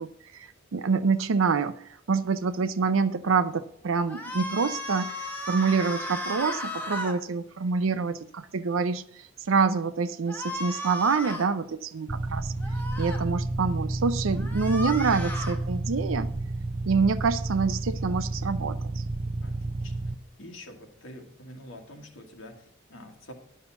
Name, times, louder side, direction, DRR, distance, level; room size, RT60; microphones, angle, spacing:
voice 1, 0.0-5.1 5.5-12.5 13.0-16.3 16.9-19.0, right 5 dB, 90° right, 10 dB, 0.6 m, -26 dB
sound 1, 4.1-7.2 10.3-11.5 12.6-13.2 14.4-15.6, left 1 dB, 10° left, 1.1 m, -35 dB
sound 2, 12.1-20.1, right 2 dB, 25° right, 0.5 m, -31 dB
voice 2, 20.4-23.3, left 1 dB, 80° left, 2 dB, 1.8 m, -46 dB
10.5 x 5.6 x 6.9 m, 0.64 s
head